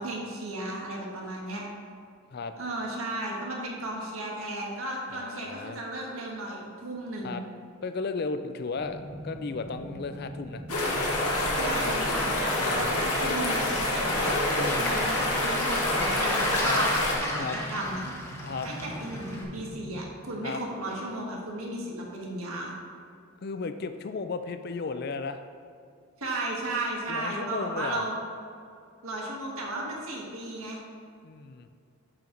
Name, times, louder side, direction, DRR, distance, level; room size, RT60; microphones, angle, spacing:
voice 1, 0.0-1.6 2.6-7.4 11.6-14.3 14.8-15.2 15.4-16.9 17.2-18.0 18.6-22.7 26.2-28.2 29.0-30.8, right 1 dB, 75° right, -2 dB, 1.5 m, -34 dB
voice 2, 5.1-5.8 7.2-7.4 7.8-10.6 12.6-13.0 14.6-15.0 16.6-16.8 17.3-17.6 18.4-18.7 20.4-20.6 23.4-25.4 27.1-28.0 31.2-31.7, left 4 dB, 45° left, 9 dB, 0.4 m, -35 dB
sound 1, 8.8-20.0, equal, 20° right, 0.6 m, -41 dB
sound 2, 10.7-17.2, left 1 dB, 90° left, 1.6 m, -27 dB
Waves surf, 13.5-19.4, left 1 dB, 10° left, 0.8 m, -34 dB
10.5 x 4.6 x 3.8 m, 2.3 s
head